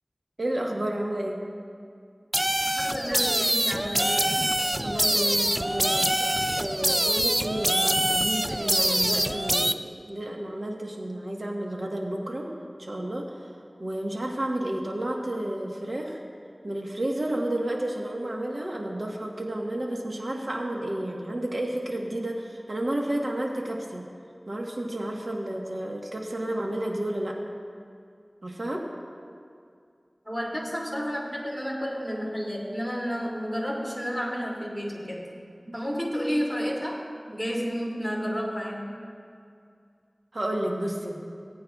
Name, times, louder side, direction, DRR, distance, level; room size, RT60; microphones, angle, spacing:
voice 1, 0.4-1.4 4.8-6.1 6.5-12.5 12.8-13.4 13.8-16.2 16.6-24.1 24.5-27.4 28.4-28.9 40.3-41.2, right 1 dB, 65° right, 0 dB, 1.3 m, -31 dB
sound 1, 2.3-9.7, right 1 dB, 25° right, 0.3 m, -25 dB
voice 2, 2.8-4.3 30.2-35.3 35.7-37.0 37.3-38.8, equal, 5° right, -4 dB, 2.6 m, -31 dB
19.0 x 8.6 x 2.4 m, 2.3 s
wide cardioid pair, 40°, 0 cm